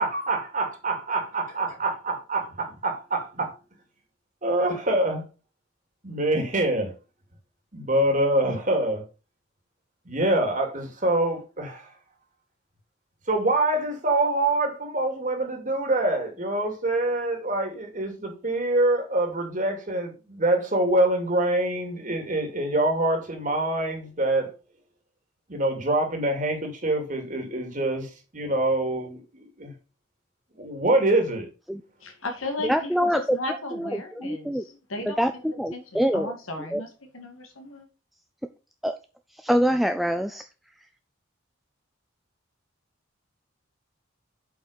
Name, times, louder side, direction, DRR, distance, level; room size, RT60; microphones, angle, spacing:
voice 1, 0.0-2.4 2.8-3.5 4.4-5.2 6.0-6.9 7.7-9.0 10.1-11.9 13.3-24.5 25.5-29.7 30.6-31.5, right 1 dB, 40° right, 2.3 m, -25 dB
voice 2, 32.0-37.9, left 2 dB, 90° left, 2.3 m, -36 dB
voice 3, 32.6-33.4 33.8-33.9 34.2-34.6 35.1-36.3 36.7-36.8 38.8-39.0 39.3-40.4, equal, ahead, 0.4 m, -24 dB
7.6 x 5.5 x 4.9 m
head